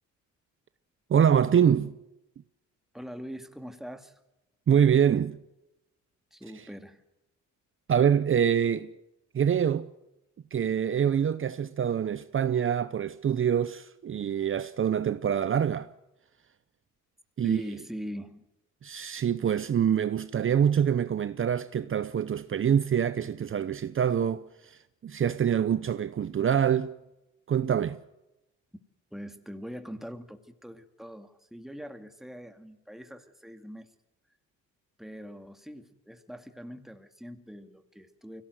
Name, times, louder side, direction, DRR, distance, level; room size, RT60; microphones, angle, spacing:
voice 1, 1.1-2.0 4.7-5.4 7.9-8.9 9.3-9.9 10.5-15.9 17.4-17.6 18.8-26.9 27.5-28.0, right 8 dB, 45° right, 0.8 m, -25 dB
voice 2, 2.9-4.2 6.3-7.0 17.4-18.4 29.1-33.9 35.0-38.4, equal, ahead, 2.3 m, -42 dB
24.0 x 17.5 x 8.0 m
cardioid pair, 90°, 30 cm